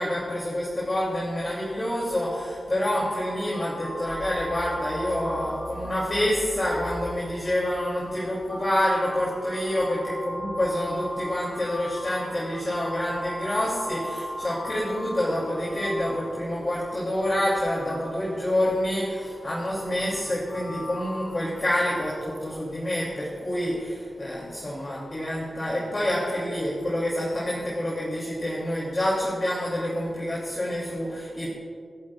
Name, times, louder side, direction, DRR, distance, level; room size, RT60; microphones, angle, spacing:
voice 1, 0.0-31.5, left 1 dB, 35° left, -6 dB, 3.2 m, -27 dB
sound 1, 3.0-16.8 17.5-21.3, equal, 10° left, 3.6 m, -38 dB
28.5 x 11.5 x 2.5 m, 2.1 s
wide cardioid pair, 125°, 0 cm